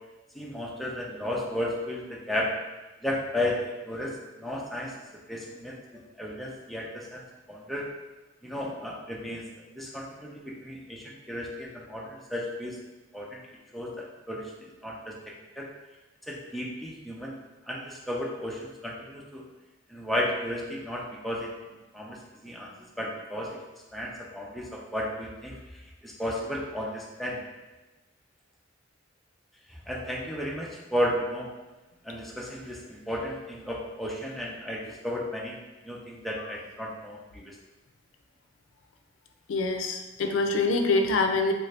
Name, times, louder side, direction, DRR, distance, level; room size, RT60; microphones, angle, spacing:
voice 1, 0.3-2.5 3.0-4.9 5.3-7.2 7.5-7.9 8.4-9.4 9.7-12.8 13.1-13.4 13.7-15.2 15.6-15.7 16.3-17.4 17.7-19.4 19.9-21.5 21.9-22.2 22.4-23.6 23.9-25.6 26.0-27.4 29.7-31.5 32.0-35.6 35.8-37.5, left 1 dB, ahead, -4 dB, 0.5 m, -33 dB
voice 2, 39.5-41.5, left 3 dB, 75° left, 4 dB, 0.4 m, -25 dB
3.3 x 2.6 x 3.2 m, 1.1 s
head